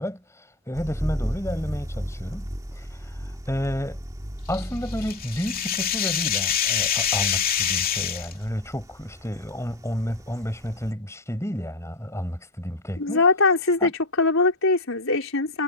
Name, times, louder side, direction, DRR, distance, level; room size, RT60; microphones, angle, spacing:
voice 1, 0.0-4.0 4.5-13.2 13.8-13.9, equal, 15° left, 7.1 m, -31 dB
sound 1, 0.7-10.9, equal, 15° right, 2.4 m, -36 dB
sound 2, 4.5-8.3, left 9 dB, 45° left, 3.1 m, -25 dB
voice 2, 13.0-13.9 14.2-15.6, left 3 dB, 75° left, 4.3 m, -21 dB
head